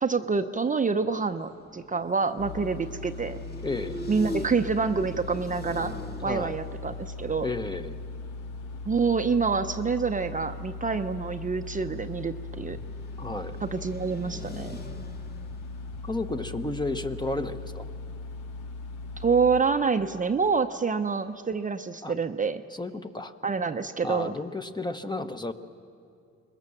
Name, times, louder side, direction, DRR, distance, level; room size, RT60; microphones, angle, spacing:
voice 1, 0.0-3.4 4.1-5.9 6.2-7.5 8.9-12.8 13.6-14.8 19.2-22.6 23.4-24.4, right 5 dB, 25° right, 7 dB, 0.7 m, -27 dB
sound 1, 1.1-9.1 9.5-9.6 9.9-17.8, left 2 dB, 30° left, 2.0 m, -43 dB
sound 2, 2.4-19.6, left 3 dB, 85° left, 1.2 m, -39 dB
voice 2, 3.6-4.0 6.2-6.6 7.4-8.0 13.2-13.6 16.0-17.9 22.0-22.1 22.7-23.3 24.0-25.5, left 2 dB, 15° left, 8 dB, 1.0 m, -32 dB
24.0 x 20.5 x 7.2 m, 2.4 s
cardioid pair, 90°, 30 cm